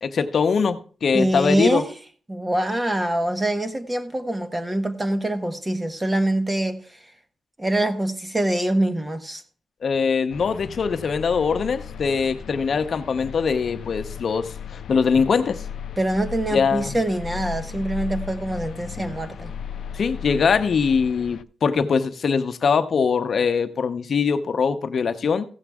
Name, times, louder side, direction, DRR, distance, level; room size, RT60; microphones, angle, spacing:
voice 1, 0.0-1.8 9.8-15.6 16.5-16.9 19.9-25.5, left 5 dB, 60° left, 0.8 m, -22 dB
voice 2, 1.1-1.9 2.3-7.0 7.6-9.4 16.0-19.5, right 1 dB, 15° right, 1.2 m, -24 dB
sound 1, 10.3-21.4, left 8 dB, 80° left, 0.4 m, -36 dB
15.5 x 7.2 x 3.5 m
wide cardioid pair, 120°, 0 cm